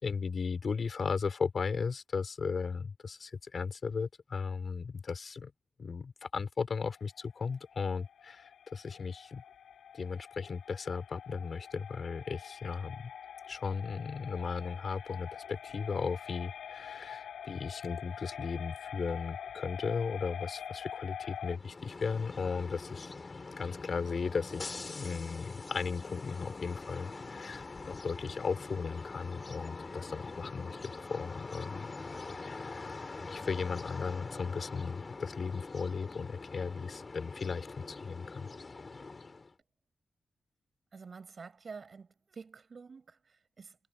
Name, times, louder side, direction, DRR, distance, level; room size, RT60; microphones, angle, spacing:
voice 1, 0.0-5.5 5.8-9.4 9.9-13.1 13.5-23.1 23.6-31.9 32.4-32.7 33.3-38.5, left 5 dB, 60° left, 5.9 m, -36 dB
sound 1, 6.9-21.6, left 8 dB, 85° left, 3.4 m, -45 dB
sound 2, 21.4-39.5, left 3 dB, 40° left, 4.6 m, -44 dB
voice 2, 40.9-43.8, right 5 dB, 55° right, 6.8 m, -49 dB
cardioid pair, 50°, 0 cm